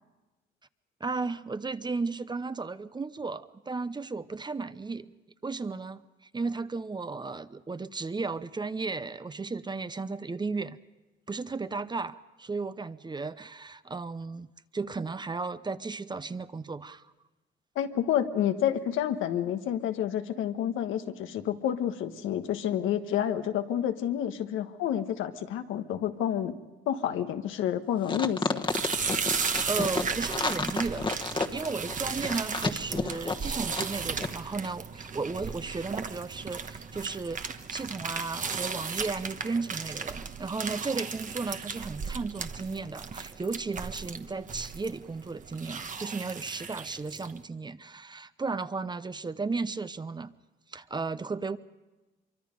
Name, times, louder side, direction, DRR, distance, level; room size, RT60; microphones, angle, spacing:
voice 1, 1.0-5.1 5.4-6.0 6.3-10.8 11.3-14.5 14.7-17.0 29.7-31.1 31.5-50.3 50.7-51.6, right 4 dB, 20° right, 14 dB, 0.7 m, -34 dB
voice 2, 17.7-26.5 26.9-28.6, left 10 dB, 90° left, 7 dB, 1.2 m, -29 dB
sound 1, 28.0-33.9 34.2-34.3, left 3 dB, 25° left, 1.3 m, -31 dB
sound 2, 28.6-47.4, right 5 dB, 40° right, 1.1 m, -35 dB
24.5 x 24.0 x 5.2 m, 1.1 s
cardioid pair, 90°, 20 cm